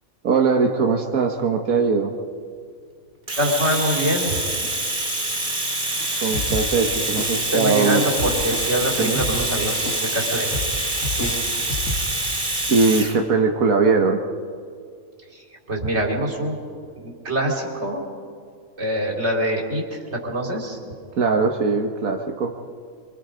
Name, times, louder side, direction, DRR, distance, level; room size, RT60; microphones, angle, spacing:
voice 1, 0.2-2.1 6.2-8.0 9.0-9.2 12.7-14.2 21.2-22.5, right 4 dB, 90° right, 2 dB, 1.7 m, -20 dB
Domestic sounds home sounds, 3.3-13.2, right 2 dB, 35° right, 2.6 m, -26 dB
voice 2, 3.4-4.4 7.5-10.5 11.1-11.3 15.3-16.6 17.0-18.0 18.8-20.8, right 1 dB, 50° right, -1 dB, 3.9 m, -24 dB
sound 1, 6.0-12.3, left 2 dB, 90° left, 2.9 m, -31 dB
27.0 x 25.0 x 5.1 m, 2.1 s
omnidirectional pair, 1.4 m